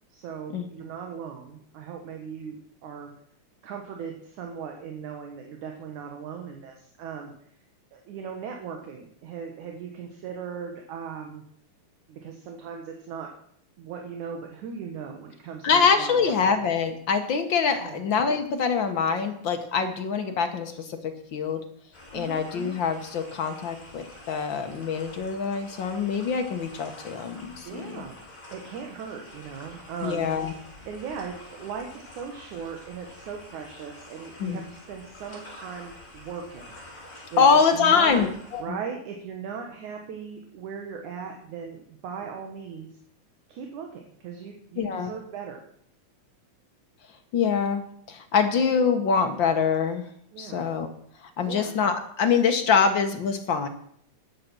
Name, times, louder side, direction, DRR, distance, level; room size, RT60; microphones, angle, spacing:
voice 1, 0.1-3.1 3.6-7.3 7.9-11.4 12.1-13.3 13.8-16.5 17.8-18.0 22.1-22.4 27.7-28.2 28.5-30.3 30.9-36.7 37.3-37.4 37.7-38.2 38.6-42.9 43.5-45.6 50.3-50.6 51.5-51.7, right 6 dB, 70° right, 3 dB, 2.8 m, -38 dB
voice 2, 15.6-21.6 22.1-28.0 30.0-30.5 34.4-34.6 37.4-38.6 44.8-45.1 47.3-50.1 50.4-50.9 51.4-53.7, left 6 dB, 65° left, 6 dB, 1.1 m, -24 dB
sound 1, 21.9-38.6, left 1 dB, 25° left, 5.5 m, -47 dB
13.0 x 10.0 x 6.1 m, 0.65 s
omnidirectional pair, 3.6 m